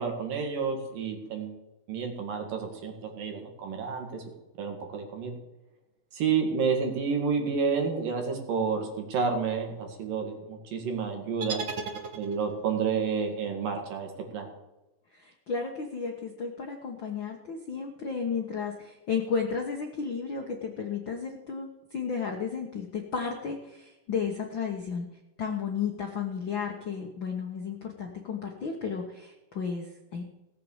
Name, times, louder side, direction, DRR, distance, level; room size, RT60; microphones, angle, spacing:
voice 1, 0.0-1.6 1.9-4.2 4.6-5.3 6.1-11.6 12.2-14.5, right 5 dB, 75° right, 3 dB, 3.9 m, -30 dB
sound 1, 11.4-12.7, right 4 dB, 50° right, 1.6 m, -36 dB
voice 2, 15.1-25.1 25.4-30.2, left 6 dB, 60° left, 2 dB, 1.2 m, -33 dB
17.5 x 7.7 x 7.3 m, 1.0 s
omnidirectional pair, 4.0 m